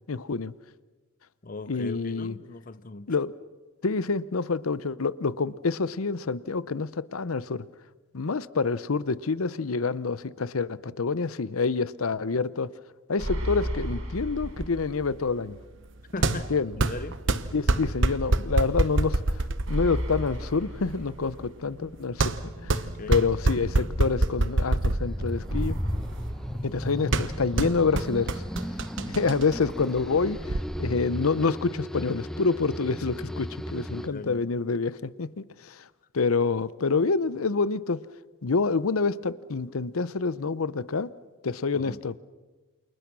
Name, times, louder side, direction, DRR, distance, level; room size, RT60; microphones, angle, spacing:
voice 1, 0.1-0.5 1.7-2.4 3.1-3.3 3.8-7.6 8.1-12.7 13.1-15.6 16.5-16.8 17.5-22.4 22.6-22.8 23.1-25.8 26.6-28.4 29.1-35.8 36.1-38.0 38.4-41.1 41.4-42.2, left 4 dB, 85° left, 0.7 m, -27 dB
voice 2, 1.4-3.1 16.1-16.5 16.8-17.2 22.8-23.2 33.9-34.4 41.7-42.0, left 3 dB, 40° left, 0.7 m, -39 dB
sound 1, 13.2-15.2 15.5-15.6 19.6-21.6 25.5-27.4, equal, 80° right, 5.2 m, -34 dB
sound 2, 14.4-30.6, right 2 dB, 60° right, 1.1 m, -28 dB
sound 3, 23.0-34.1, equal, ahead, 0.9 m, -36 dB
28.5 x 28.5 x 6.2 m
head